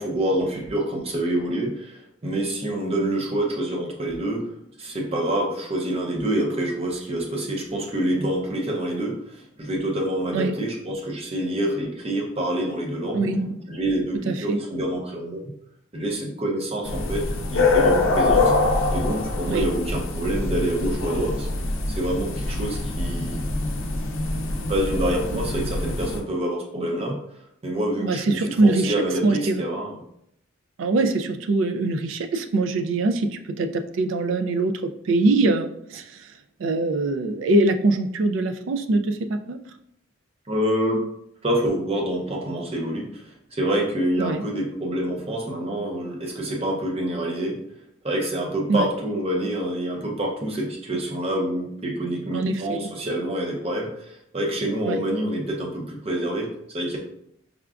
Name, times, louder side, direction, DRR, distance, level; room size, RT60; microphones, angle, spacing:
voice 1, 0.0-4.5 4.8-13.2 13.7-15.5 15.9-18.5 18.9-21.5 21.9-23.5 24.7-27.2 27.6-30.0 40.5-41.0 41.4-43.2 43.5-47.6 48.0-57.0, right 1 dB, 30° right, 0 dB, 0.7 m, -27 dB
voice 2, 13.1-13.8 14.2-14.6 19.5-19.7 28.0-28.9 29.2-29.5 30.8-36.3 36.6-39.6 44.2-44.4 48.7-48.9 52.3-52.9 54.8-55.0, right 2 dB, 70° right, 7 dB, 0.4 m, -23 dB
sound 1, 16.8-26.2, left 3 dB, 85° left, 0.5 m, -24 dB
4.9 x 2.2 x 2.4 m, 0.72 s
head